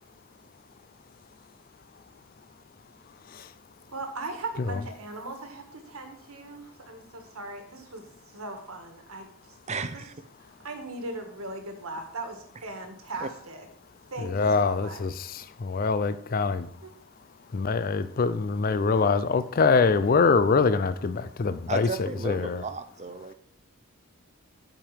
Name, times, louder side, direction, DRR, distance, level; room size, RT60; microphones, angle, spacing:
voice 1, 3.9-8.1 8.3-9.5 9.9-10.0 10.6-13.7 14.1-15.0 16.8-16.9, right 2 dB, 75° right, 1.6 m, -39 dB
voice 2, 9.7-10.1 13.2-13.3 21.7-23.3, right 4 dB, 30° right, 0.6 m, -34 dB
voice 3, 14.2-15.1 15.6-16.7 17.5-22.6, left 4 dB, 40° left, 0.4 m, -24 dB
7.6 x 5.1 x 7.3 m
head